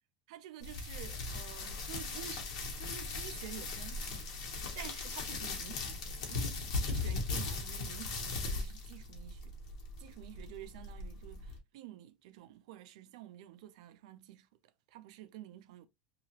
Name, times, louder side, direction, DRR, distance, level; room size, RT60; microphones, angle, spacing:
voice 1, 0.3-2.5 2.8-4.3 4.8-6.6 6.9-9.5 10.0-14.5 14.9-15.9, right 13 dB, 80° right, 0.4 m, -50 dB
sound 1, 0.6-11.6, left 3 dB, 90° left, 0.9 m, -39 dB
2.9 x 2.3 x 2.8 m
supercardioid pair, 145°, 3 cm